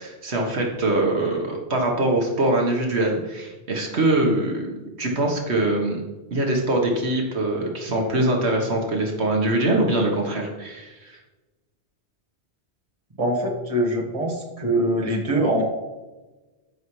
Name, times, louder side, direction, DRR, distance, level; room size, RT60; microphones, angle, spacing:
voice 1, 0.0-4.7 5.0-6.0 6.3-11.2, right 2 dB, 75° right, 1 dB, 1.6 m, -23 dB
voice 2, 13.2-15.6, right 1 dB, 30° right, -1 dB, 1.6 m, -23 dB
14.0 x 5.6 x 3.2 m, 1.1 s
omnidirectional pair, 1.1 m